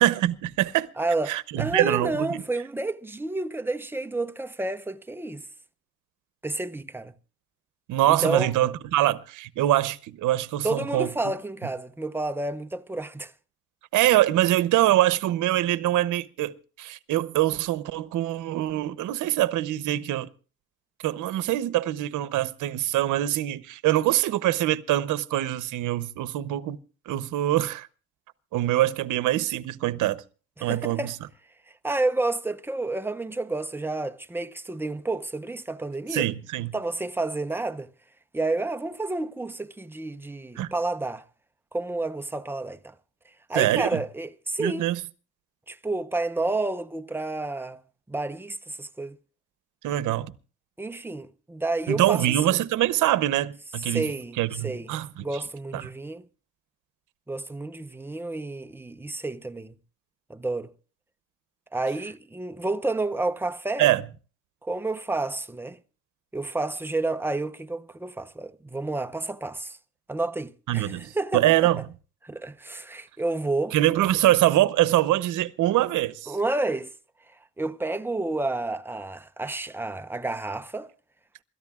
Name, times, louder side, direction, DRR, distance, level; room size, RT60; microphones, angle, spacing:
voice 1, 0.0-0.9 1.3-2.4 7.9-11.1 13.9-20.3 21.0-26.8 27.1-27.9 28.5-30.2 30.6-31.1 36.1-36.7 40.6-40.7 43.5-44.0 44.6-45.0 49.8-50.3 51.9-54.1 54.4-55.3 55.7-55.8 63.8-64.0 70.7-71.8 73.7-76.4, right 14 dB, 85° right, 0.8 m, -24 dB
voice 2, 1.0-5.4 6.4-7.1 8.1-8.5 10.6-13.3 30.6-31.1 31.8-36.3 36.7-37.9 38.3-41.2 41.7-42.9 43.5-44.9 45.7-47.8 48.1-49.2 50.8-52.6 53.9-54.9 55.2-56.2 57.3-59.7 60.3-60.7 61.7-63.9 64.6-65.8 66.3-69.8 70.1-71.6 72.2-73.8 76.3-76.9 77.6-80.9, right 2 dB, 5° right, 0.8 m, -30 dB
27.5 x 14.0 x 2.4 m
cardioid pair, 90°, 30 cm